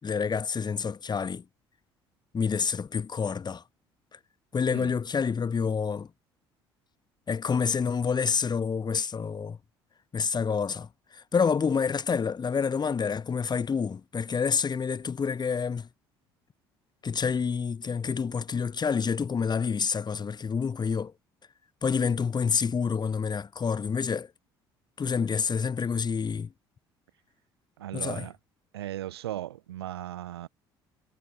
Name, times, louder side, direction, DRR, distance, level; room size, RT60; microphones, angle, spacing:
voice 1, 0.0-1.4 2.3-3.6 4.1-4.2 4.5-6.1 7.3-9.6 10.1-15.9 17.0-21.1 21.8-24.3 25.0-26.5 27.9-28.3, left 6 dB, 35° left, 4.7 m, -28 dB
voice 2, 27.8-28.4 28.7-30.5, right 13 dB, 80° right, 5.8 m, -37 dB
figure-of-eight pair, 55°, 13 cm